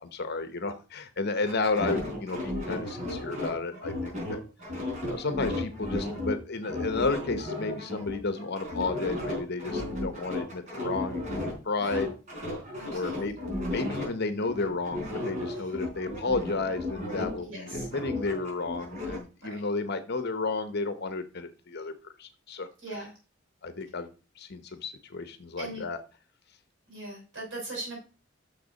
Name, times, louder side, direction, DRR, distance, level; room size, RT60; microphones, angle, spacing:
voice 1, 0.0-4.4 5.1-12.1 12.9-13.3 13.7-21.9 22.2-22.7 23.6-24.1 24.4-26.0, left 3 dB, 55° left, 10 dB, 0.9 m, -32 dB
sound 1, 1.5-6.3 6.6-11.5 11.8-14.1 14.4-17.4 17.7-19.2, left 2 dB, 40° right, 4.2 m, -34 dB
voice 2, 12.8-13.3 15.5-15.7 17.4-17.9 19.4-19.5 22.8-23.1 25.6-25.9 26.9-28.0, right 2 dB, 70° right, -3 dB, 5.2 m, -40 dB
6.7 x 6.5 x 5.3 m, 0.35 s
head